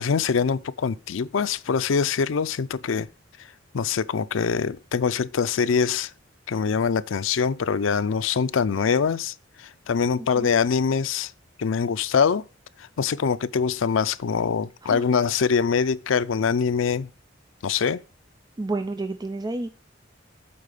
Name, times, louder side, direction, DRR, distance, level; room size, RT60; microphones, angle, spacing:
voice 1, 0.0-3.1 3.7-6.1 6.5-11.3 11.6-12.4 13.0-17.1 17.6-18.0, left 6 dB, 85° left, 0.5 m, -24 dB
voice 2, 10.2-10.5 14.8-15.1 18.6-19.8, right 2 dB, 20° right, 0.5 m, -30 dB
8.7 x 4.1 x 6.7 m
head